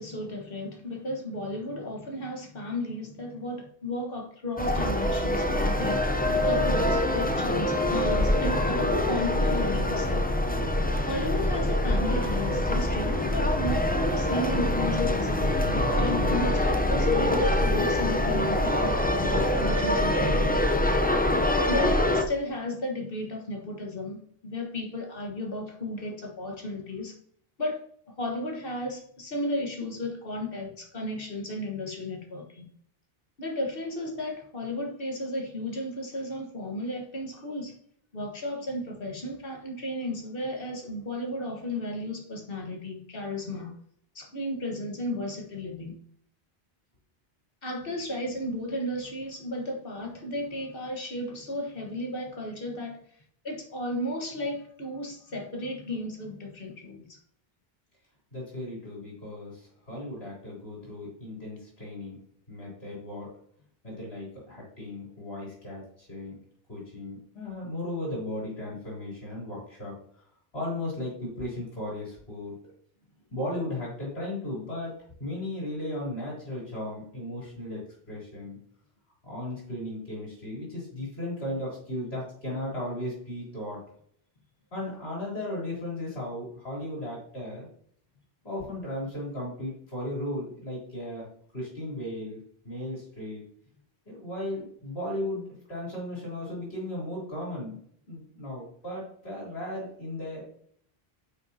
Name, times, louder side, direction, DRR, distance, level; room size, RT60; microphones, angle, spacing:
voice 1, 0.0-10.2 11.1-20.6 21.6-27.2 27.6-27.8 28.2-32.7 33.4-37.7 38.1-43.8 44.2-45.9 47.6-53.0 53.4-57.2, left 1 dB, 60° left, 1 dB, 1.6 m, -34 dB
sound 1, 4.6-22.2, left 1 dB, 10° left, 0.5 m, -25 dB
voice 2, 58.3-62.2 62.5-63.3 63.8-66.3 66.7-69.9 70.5-72.6 73.3-74.9 75.2-77.8 78.1-78.6 79.2-83.8 84.7-87.7 88.4-91.3 91.5-93.4 94.1-97.7 98.1-100.4, left 1 dB, 85° left, -5 dB, 3.6 m, -36 dB
9.2 x 5.8 x 2.8 m, 0.63 s
omnidirectional pair, 1.0 m